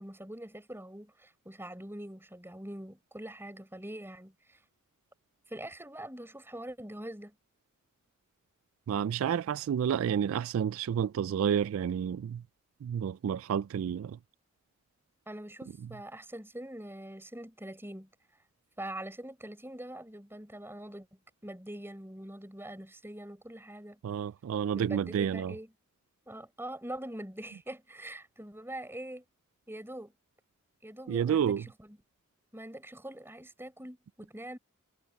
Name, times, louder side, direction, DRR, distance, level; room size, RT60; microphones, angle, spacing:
voice 1, 0.0-4.6 5.5-7.4 15.3-18.1 18.8-24.0 24.7-25.7 26.2-29.2 29.7-30.1 30.8-32.0 32.5-34.6, right 1 dB, 10° right, 6.4 m, -43 dB
voice 2, 8.9-12.4 12.8-14.2 24.0-25.5 31.1-31.6, right 8 dB, 75° right, 0.3 m, -30 dB
head